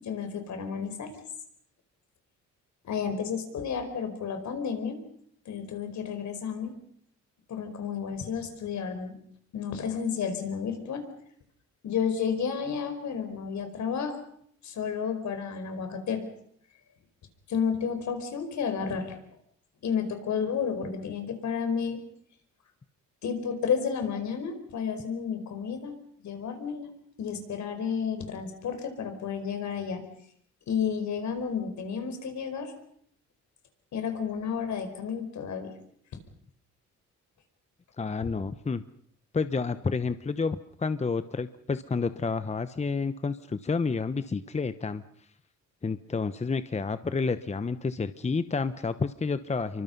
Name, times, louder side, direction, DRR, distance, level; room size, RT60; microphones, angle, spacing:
voice 1, 0.0-1.1 2.8-5.0 5.5-6.7 7.5-9.2 9.5-11.0 11.8-14.2 14.6-16.3 17.5-19.2 19.8-22.0 23.2-25.9 26.2-30.0 30.7-32.7 33.9-35.7, left 6 dB, 70° left, 7 dB, 4.9 m, -31 dB
voice 2, 38.0-38.8 39.3-45.0 45.8-49.8, left 4 dB, 20° left, 12 dB, 1.0 m, -30 dB
27.0 x 24.0 x 5.4 m, 0.66 s
cardioid pair, 90°, 30 cm